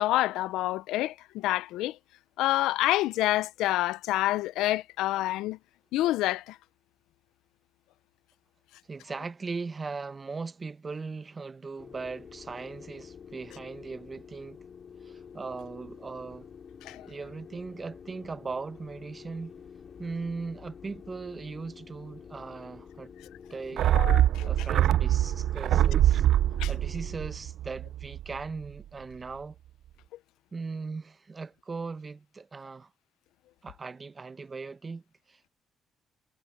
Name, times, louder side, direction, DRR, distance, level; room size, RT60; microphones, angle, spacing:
voice 1, 0.0-2.0 2.4-5.6 5.9-6.6 16.9-17.1 23.9-24.5 26.6-26.7, left 16 dB, 90° left, 0.5 m, -27 dB
voice 2, 8.9-14.6 15.0-16.5 17.0-19.6 20.0-23.1 23.5-24.0 24.4-26.3 26.7-29.6 30.5-32.9 33.6-35.0 35.3-35.5, right 4 dB, 30° right, 0.9 m, -39 dB
sound 1, 11.8-27.3, left 7 dB, 50° left, 3.4 m, -49 dB
sound 2, 23.8-28.4 28.6-28.7, right 12 dB, 70° right, 0.4 m, -24 dB
cardioid pair, 80°, 0 cm